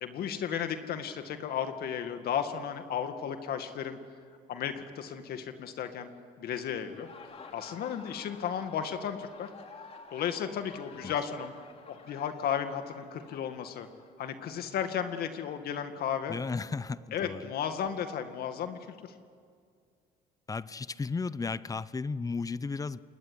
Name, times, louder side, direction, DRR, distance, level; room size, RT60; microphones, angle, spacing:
voice 1, 0.0-4.0 4.5-6.1 6.4-7.1 7.5-9.5 10.1-11.5 11.9-13.9 14.2-16.4 17.1-18.8, left 8 dB, 65° left, 7 dB, 2.1 m, -34 dB
Laughter, 6.9-14.4, left 4 dB, 35° left, 2.8 m, -51 dB
voice 2, 16.3-17.5 20.5-23.0, left 4 dB, 20° left, 18 dB, 0.7 m, -34 dB
27.5 x 21.5 x 9.8 m, 2.1 s
cardioid pair, 110°, 17 cm